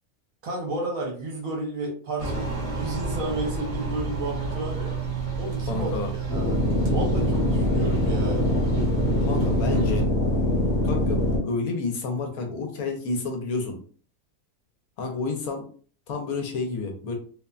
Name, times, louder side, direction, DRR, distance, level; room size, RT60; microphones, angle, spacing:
voice 1, 0.4-5.0 5.4-6.5 6.9-8.4, right 2 dB, 65° right, -1 dB, 1.1 m, -32 dB
sound 1, 2.2-10.0, right 4 dB, 45° right, 0.9 m, -30 dB
voice 2, 5.7-6.1 9.2-10.1 10.8-13.8 15.0-15.6 16.1-17.2, left 3 dB, 75° left, 3 dB, 1.1 m, -29 dB
sound 2, 6.3-11.4, left 1 dB, 15° left, 0.9 m, -23 dB
2.7 x 2.1 x 2.3 m, 0.43 s
omnidirectional pair, 1.6 m